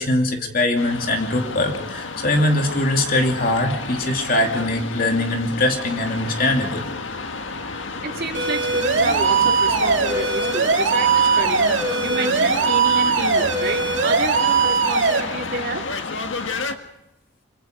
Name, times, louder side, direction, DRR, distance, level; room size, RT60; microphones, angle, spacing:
voice 1, 0.0-6.9, left 1 dB, 45° left, 3 dB, 2.8 m, -22 dB
sound 1, 0.8-16.8, left 3 dB, 75° left, 1.7 m, -31 dB
voice 2, 8.0-15.9, right 3 dB, 50° right, 2 dB, 2.7 m, -29 dB
sound 2, 8.3-15.2, right 5 dB, 70° right, 2.4 m, -20 dB
25.0 x 24.0 x 5.2 m, 0.91 s
head